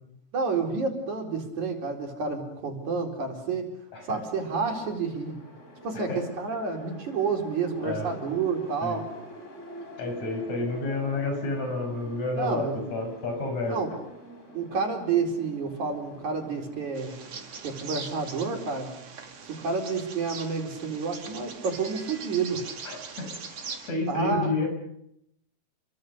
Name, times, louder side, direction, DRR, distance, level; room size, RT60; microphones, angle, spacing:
voice 1, 0.3-3.6 4.0-5.4 5.8-9.1 12.3-12.8 13.6-13.9 14.5-17.1 17.6-18.9 19.5-22.6 24.1-24.5, right 5 dB, 80° right, 1 dB, 5.7 m, -29 dB
sound 1, 4.2-22.0, equal, 25° left, 4.9 m, -48 dB
voice 2, 7.8-8.2 8.8-9.0 10.0-13.8 22.8-23.3 23.9-24.7, left 2 dB, 70° left, 4 dB, 7.1 m, -30 dB
Bird vocalization bird call bird song, 17.0-23.9, right 5 dB, 55° right, 3.4 m, -41 dB
30.0 x 24.0 x 6.8 m, 0.80 s
omnidirectional pair, 3.3 m